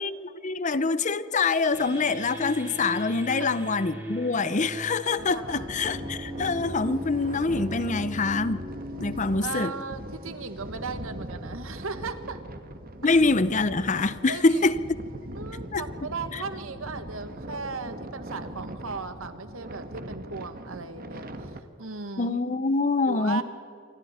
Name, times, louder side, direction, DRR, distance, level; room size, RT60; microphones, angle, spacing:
voice 1, 0.0-8.6 9.0-9.7 13.0-14.8 15.7-15.8 22.2-23.4, left 3 dB, 35° left, 15 dB, 0.7 m, -25 dB
sound 1, 1.7-11.1, equal, 10° right, 3.7 m, -38 dB
sound 2, 5.2-21.6, right 1 dB, 45° right, 1.5 m, -41 dB
voice 2, 5.3-5.9 9.4-12.4 14.3-14.6 15.3-22.4 23.1-23.4, right 4 dB, 85° right, 9 dB, 1.6 m, -37 dB
28.0 x 24.0 x 4.3 m, 2.7 s
head